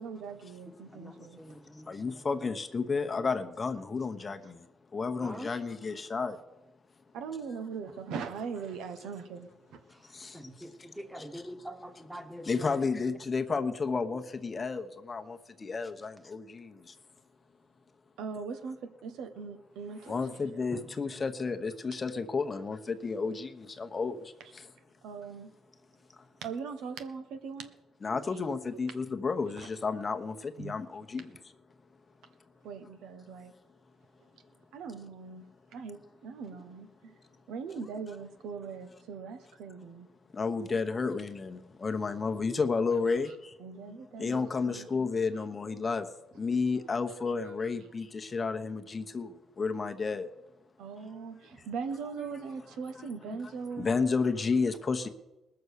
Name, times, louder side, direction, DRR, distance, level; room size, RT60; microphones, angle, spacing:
voice 1, 0.0-1.4 7.1-9.8 18.2-20.6 25.0-25.5 26.4-27.7 29.6-29.7 30.6-30.7 32.6-33.5 34.7-35.4 35.7-37.1 37.5-40.1 43.6-44.9 50.8-53.9, right 5 dB, 85° right, 8 dB, 1.2 m, -40 dB
voice 2, 0.9-2.5 3.2-3.3 5.2-5.6 9.9-12.7 20.7-20.9, equal, 5° right, 7 dB, 1.4 m, -45 dB
voice 3, 1.9-4.4 4.9-6.4 10.2-10.3 12.5-16.7 20.1-24.2 28.0-31.3 40.4-43.3 44.2-46.0 46.4-49.3 49.6-50.3 52.2-52.3 53.0-53.1 53.8-55.1, left 4 dB, 35° left, 6 dB, 1.0 m, -31 dB
19.5 x 6.9 x 6.5 m, 0.98 s
cardioid pair, 90°, 0 cm